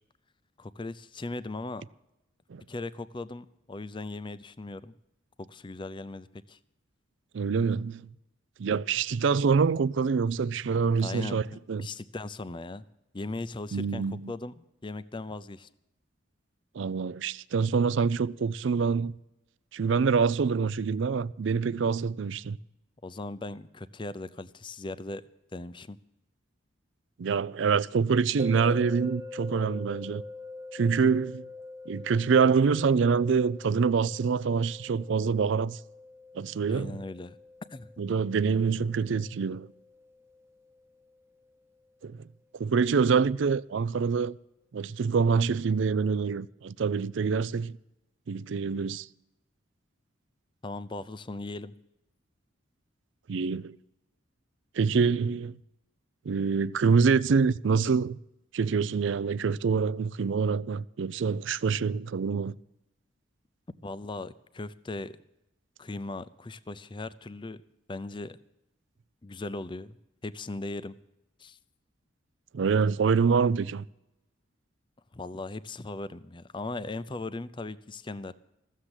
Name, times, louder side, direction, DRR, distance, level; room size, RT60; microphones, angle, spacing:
voice 1, 0.6-1.8 2.7-4.9 5.4-6.6 11.0-11.4 11.8-12.9 13.1-15.7 23.0-26.0 36.7-37.4 37.7-37.9 50.6-51.7 63.8-65.2 65.8-67.6 67.9-68.4 69.2-70.0 70.2-71.0 71.4-71.6 75.1-78.3, left 2 dB, 25° left, 0.5 m, -38 dB
voice 2, 7.3-8.1 8.6-11.9 13.7-14.3 16.7-19.1 19.7-22.6 27.2-30.2 30.7-31.4 31.9-35.8 36.3-37.0 38.0-39.7 42.0-42.3 42.5-44.4 44.7-47.8 48.3-49.1 53.3-53.8 54.8-55.6 56.3-58.2 58.5-62.6 72.5-73.8, right 5 dB, 65° right, 0.4 m, -26 dB
sound 1, 28.4-41.5, left 3 dB, 10° right, 0.8 m, -45 dB
15.0 x 7.4 x 9.8 m
head